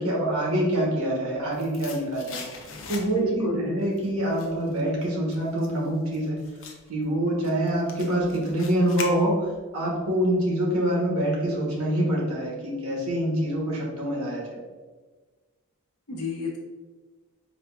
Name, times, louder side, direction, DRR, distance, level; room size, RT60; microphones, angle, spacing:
voice 1, 0.0-6.4 6.9-9.5 9.7-14.6, right 1 dB, 80° right, -3 dB, 1.0 m, -26 dB
sound 1, 1.0-3.4 3.8-9.7 10.0-10.1, left 5 dB, 60° left, 0.5 m, -42 dB
voice 2, 3.1-3.7 16.1-16.6, left 2 dB, 85° left, -1 dB, 0.8 m, -30 dB
4.8 x 2.2 x 2.3 m, 1.3 s
head